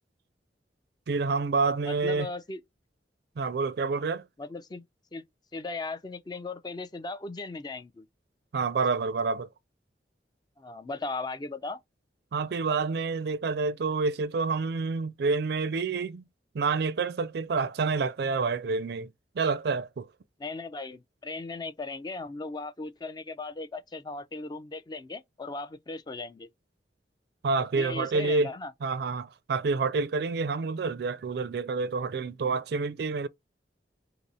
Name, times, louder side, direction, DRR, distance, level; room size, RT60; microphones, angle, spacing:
voice 1, 1.1-2.3 3.4-4.2 8.5-9.5 12.3-16.2 16.5-19.1 19.4-20.1 27.4-28.5 28.8-33.3, right 4 dB, 60° right, 0.4 m, -28 dB
voice 2, 1.9-2.6 4.4-4.8 5.1-5.2 5.5-8.0 10.6-11.8 20.4-26.5 27.7-28.7, left 3 dB, 25° left, 0.4 m, -37 dB
5.4 x 2.0 x 4.0 m
head